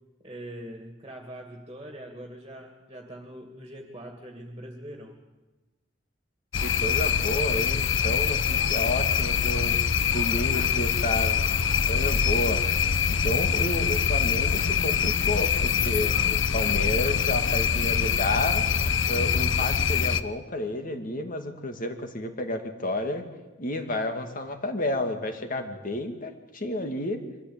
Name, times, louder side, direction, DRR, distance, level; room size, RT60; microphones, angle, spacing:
voice 1, 0.2-5.2, right 1 dB, 25° right, 3 dB, 2.3 m, -42 dB
sound 1, 6.5-20.2, left 6 dB, 85° left, 0.8 m, -24 dB
voice 2, 6.6-9.8 10.1-11.4 11.9-12.6 13.2-18.6 19.1-23.2 23.6-27.2, left 1 dB, 45° left, 6 dB, 2.3 m, -31 dB
24.0 x 14.5 x 8.8 m, 1.2 s
head